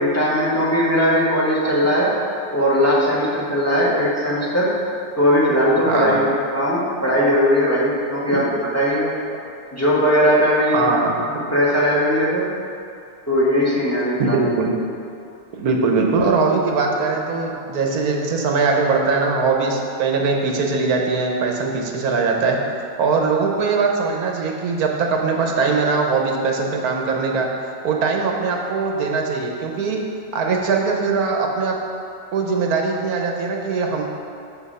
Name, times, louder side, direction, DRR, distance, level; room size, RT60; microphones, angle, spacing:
voice 1, 0.0-2.1 2.5-4.7 5.2-6.2 6.5-8.4 8.7-9.1 9.7-10.9 11.5-12.5 13.3-14.4, equal, 10° left, -6 dB, 1.3 m, -18 dB
voice 2, 5.9-6.2 8.3-8.4 10.7-11.4 14.2-14.7 15.5-22.6 23.0-27.5 27.8-30.0 30.3-31.8 32.3-34.0, right 4 dB, 60° right, 1 dB, 1.2 m, -21 dB
6.7 x 6.2 x 5.5 m, 2.5 s
omnidirectional pair, 2.0 m